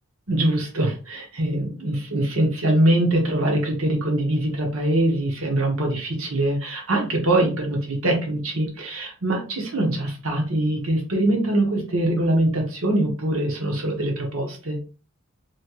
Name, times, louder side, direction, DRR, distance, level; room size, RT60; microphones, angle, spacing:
voice 1, 0.3-14.8, right 1 dB, 70° right, 1 dB, 1.1 m, -23 dB
3.1 x 2.9 x 2.9 m, 0.36 s
head